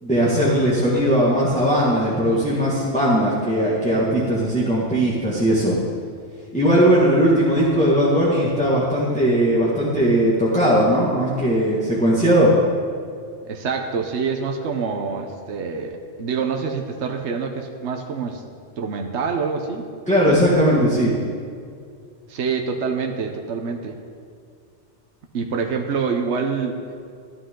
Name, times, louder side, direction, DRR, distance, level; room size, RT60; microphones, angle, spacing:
voice 1, 0.0-5.8 6.5-12.5 20.1-21.2, equal, 5° left, -9 dB, 1.9 m, -18 dB
voice 2, 13.4-18.4 18.8-19.8 22.3-24.0 25.3-26.8, right 5 dB, 70° right, 3 dB, 1.2 m, -26 dB
15.0 x 12.0 x 3.8 m, 2.2 s
omnidirectional pair, 1.2 m